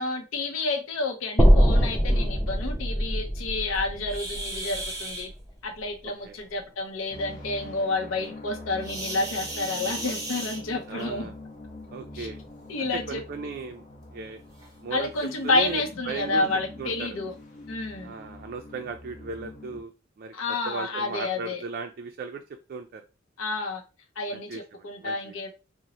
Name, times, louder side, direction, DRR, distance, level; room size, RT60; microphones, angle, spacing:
voice 1, 0.0-5.3 5.6-11.3 12.1-12.3 12.7-13.2 14.9-17.4 17.7-18.1 20.3-21.6 23.4-23.8 24.2-25.5, left 3 dB, 85° left, 0.6 m, -30 dB
sound 1, 1.4-5.6, equal, 5° left, 0.6 m, -22 dB
sound 2, 4.0-5.3 8.8-11.0 12.3-12.4 13.0-13.1 13.7-13.8 14.6-14.7 15.2-15.3, right 2 dB, 20° right, 0.8 m, -35 dB
sound 3, 7.1-19.8, left 2 dB, 40° left, 0.8 m, -44 dB
voice 2, 9.7-10.1 10.9-11.3 11.9-12.4 12.8-13.8 14.1-14.4 14.8-15.1 15.4-16.5 16.8-17.2 18.0-19.9 20.2-22.4 22.7-23.0 24.3-25.3, right 4 dB, 50° right, 0.3 m, -37 dB
2.9 x 2.0 x 3.8 m
head